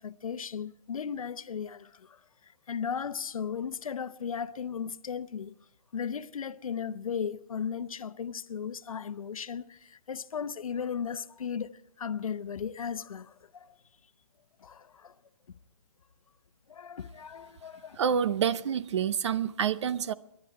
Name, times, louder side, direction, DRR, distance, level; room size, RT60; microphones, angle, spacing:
voice 1, 0.0-2.2 2.7-5.6 5.9-13.7 14.6-15.1 16.7-18.0, left 7 dB, 80° left, 0.8 m, -36 dB
voice 2, 18.0-20.1, right 8 dB, 55° right, 0.7 m, -28 dB
24.5 x 11.5 x 4.7 m
hypercardioid pair, 155°, 18 cm